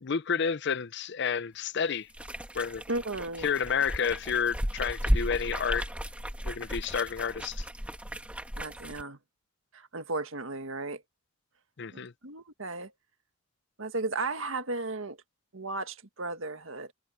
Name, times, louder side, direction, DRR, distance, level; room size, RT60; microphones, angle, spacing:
voice 1, 0.0-2.1 2.5-2.8 3.4-5.9 6.4-7.7 11.8-12.1, left 6 dB, 60° left, 0.6 m, -30 dB
sound 1, 2.1-9.0, equal, 5° right, 1.7 m, -34 dB
voice 2, 2.9-3.5 8.6-9.2 9.7-11.0 11.9-12.9 13.8-15.2 15.5-16.9, right 3 dB, 75° right, 1.8 m, -35 dB
head